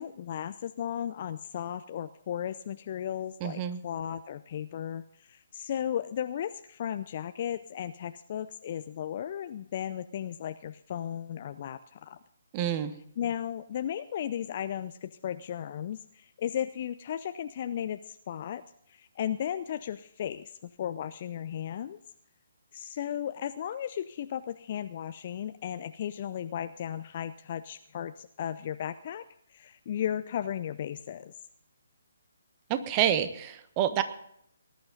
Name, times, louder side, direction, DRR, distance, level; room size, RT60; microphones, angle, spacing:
voice 1, 0.0-12.2 13.2-18.6 18.9-22.0 22.7-29.2 29.5-31.3, left 10 dB, 40° left, 10 dB, 0.5 m, -35 dB
voice 2, 3.4-3.8 12.5-12.9 32.7-34.0, right 10 dB, 25° right, 11 dB, 1.2 m, -28 dB
19.5 x 11.5 x 3.8 m, 0.72 s
figure-of-eight pair, 140°, 0 cm